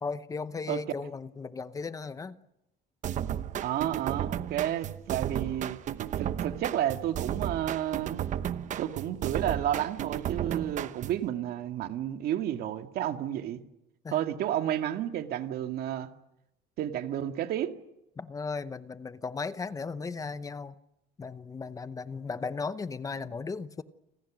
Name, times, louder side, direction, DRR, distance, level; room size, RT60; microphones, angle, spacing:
voice 1, 0.0-2.4 14.0-14.2 18.2-20.8 21.2-23.8, left 4 dB, 20° left, 0.9 m, -36 dB
sound 1, 3.0-11.3, right 10 dB, 40° right, 1.0 m, -34 dB
voice 2, 3.6-5.8 6.2-8.2 8.8-13.6 14.1-16.1 16.8-17.7, right 11 dB, 55° right, 2.1 m, -31 dB
29.5 x 26.0 x 6.3 m
cardioid pair, 160°, 19 cm